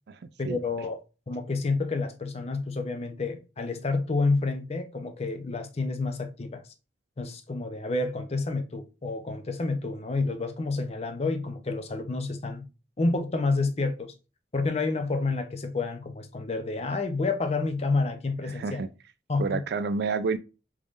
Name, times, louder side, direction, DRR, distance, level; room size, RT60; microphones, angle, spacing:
voice 1, 0.4-1.0 1.3-6.6 7.2-12.7 13.0-14.1 14.5-18.9 19.3-19.6, left 3 dB, 35° left, 0.5 m, -29 dB
voice 2, 18.5-18.9 19.4-20.4, right 4 dB, 65° right, 0.4 m, -29 dB
3.6 x 3.1 x 2.4 m
head